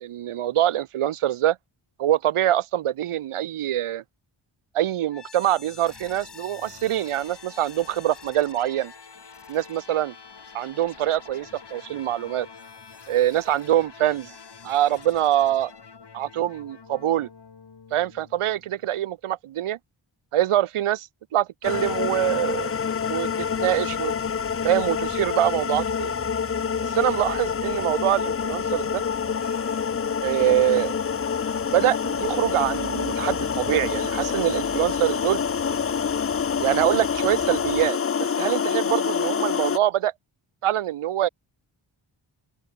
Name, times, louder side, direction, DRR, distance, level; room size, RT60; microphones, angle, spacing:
voice 1, 0.0-1.6 2.0-4.0 4.7-8.9 9.5-10.1 10.5-12.5 13.1-14.3 14.6-15.7 16.1-17.3 17.9-19.8 20.3-22.8 23.1-24.1 24.6-26.1 26.8-29.0 30.2-30.9 31.7-35.4 36.6-40.1 40.6-41.3, right 12 dB, 85° right, 0.7 m, -24 dB
sound 1, 5.1-19.0, left 5 dB, 55° left, 3.9 m, -46 dB
sound 2, 21.6-39.8, left 7 dB, 30° left, 0.4 m, -27 dB
sound 3, 23.4-37.9, right 5 dB, 55° right, 3.5 m, -44 dB
open air
wide cardioid pair, 120°, 49 cm